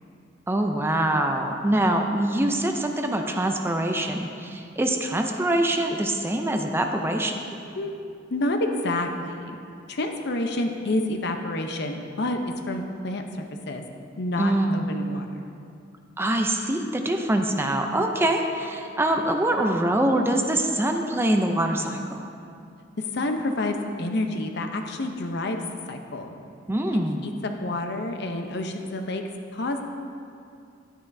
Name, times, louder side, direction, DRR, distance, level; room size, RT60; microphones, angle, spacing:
voice 1, 0.5-7.4 14.4-14.8 16.2-22.3 26.7-27.3, right 1 dB, 10° right, 4 dB, 0.5 m, -24 dB
voice 2, 8.3-9.6 9.9-12.4 12.7-13.8 14.2-15.3 23.0-26.3 27.2-29.2 29.5-29.8, left 2 dB, 60° left, 5 dB, 0.7 m, -29 dB
11.0 x 10.0 x 2.7 m, 2.5 s
head